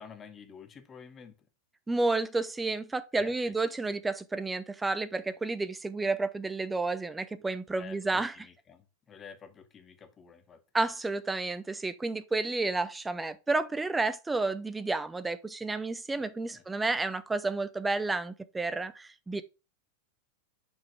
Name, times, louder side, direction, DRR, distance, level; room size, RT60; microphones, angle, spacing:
voice 1, 0.0-1.4 3.1-3.5 7.8-10.6 16.5-16.6, left 6 dB, 25° left, 1.0 m, -49 dB
voice 2, 1.9-8.3 10.7-19.4, right 3 dB, 10° right, 0.6 m, -31 dB
5.4 x 5.1 x 4.8 m
figure-of-eight pair, 90°, 0 cm